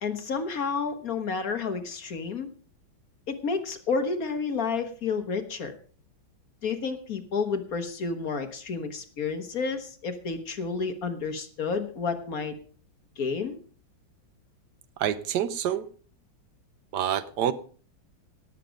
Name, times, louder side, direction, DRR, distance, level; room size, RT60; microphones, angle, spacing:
voice 1, 0.0-2.5 3.3-5.7 6.6-12.5 13.2-13.6, left 5 dB, 50° left, 1.5 m, -30 dB
voice 2, 15.0-15.9 16.9-17.5, right 10 dB, 65° right, 1.3 m, -27 dB
17.5 x 7.5 x 5.1 m
omnidirectional pair, 2.2 m